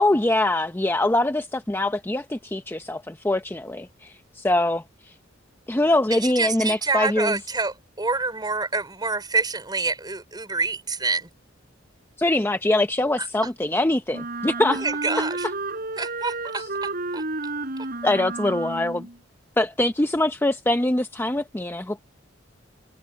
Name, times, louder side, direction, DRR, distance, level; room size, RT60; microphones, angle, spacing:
voice 1, 0.0-4.8 5.7-7.4 12.2-14.8 16.6-16.7 18.0-19.1 19.6-22.0, left 1 dB, 10° left, 0.6 m, -23 dB
voice 2, 6.1-11.3 14.7-15.5 16.0-17.2, right 3 dB, 20° right, 4.2 m, -27 dB
Wind instrument woodwind instrument, 14.1-19.2, right 2 dB, 50° right, 4.8 m, -31 dB
head